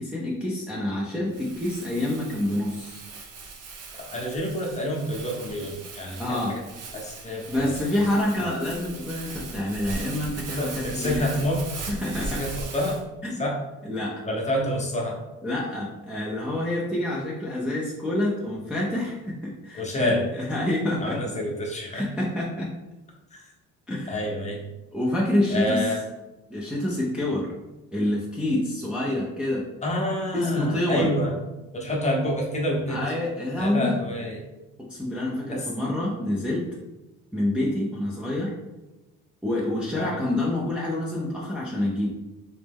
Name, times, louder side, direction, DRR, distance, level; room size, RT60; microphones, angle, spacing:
voice 1, 0.0-3.0 6.2-6.5 7.5-11.2 11.9-12.4 13.2-13.4 13.8-14.2 15.4-21.2 21.9-22.7 23.9-24.2 24.9-25.9 26.5-27.5 27.9-29.7 30.3-31.1 32.9-34.0 34.9-36.7 37.3-38.5 39.4-42.1, left 1 dB, 5° right, -5 dB, 0.6 m, -27 dB
Crumpling crinkling, 1.3-13.0, right 3 dB, 55° right, 0.8 m, -39 dB
voice 2, 4.1-6.6 6.9-7.7 8.1-8.3 10.5-11.6 12.2-12.9 13.4-13.5 14.2-15.2 19.7-20.2 21.0-22.1 23.3-23.4 24.1-24.6 25.5-26.0 29.8-31.4 31.7-33.1 33.6-34.4 35.5-35.7 39.9-40.2, equal, 20° left, -1 dB, 0.9 m, -28 dB
3.2 x 3.1 x 3.5 m, 1.1 s
cardioid pair, 120°, 30 cm